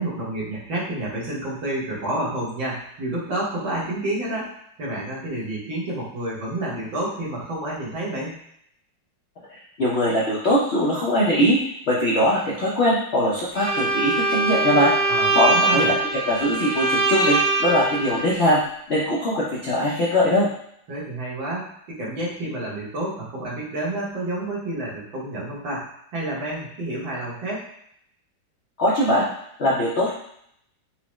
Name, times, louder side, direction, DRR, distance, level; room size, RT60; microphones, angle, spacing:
voice 1, 0.0-4.5 4.8-8.4 15.1-15.9 20.9-25.9 26.1-27.7, right 1 dB, 85° right, -6 dB, 1.9 m, -29 dB
voice 2, 9.8-11.6 11.9-14.9 15.3-18.6 18.9-20.5 28.8-29.3 29.6-30.2, equal, 80° left, -6 dB, 0.5 m, -21 dB
Bowed string instrument, 13.5-18.2, right 3 dB, 40° right, 0.8 m, -22 dB
4.6 x 2.0 x 3.0 m, 0.71 s
omnidirectional pair, 2.0 m